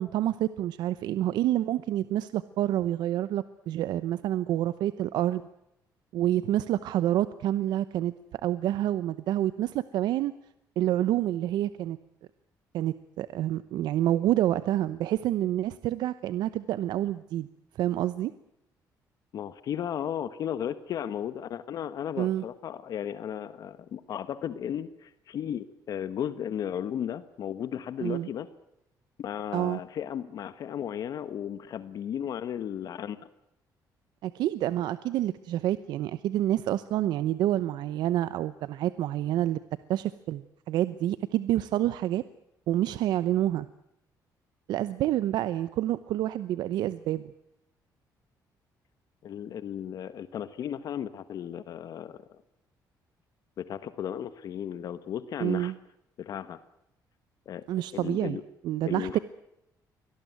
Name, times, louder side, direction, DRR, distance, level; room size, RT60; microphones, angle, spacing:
voice 1, 0.0-5.4 6.1-8.1 8.4-10.3 10.8-12.0 12.7-17.5 17.8-18.3 22.2-22.4 28.0-28.3 29.5-29.8 34.2-39.6 39.9-42.2 42.7-43.7 44.7-47.2 55.4-55.7 57.7-59.2, right 13 dB, 85° right, 15 dB, 0.8 m, -28 dB
voice 2, 19.3-28.5 29.2-33.2 49.2-52.4 53.6-55.7 56.2-56.6 57.5-57.6 57.9-58.4 58.8-59.2, left 9 dB, 60° left, 13 dB, 1.3 m, -35 dB
24.5 x 18.5 x 9.4 m, 0.84 s
cardioid pair, 135°, 7 cm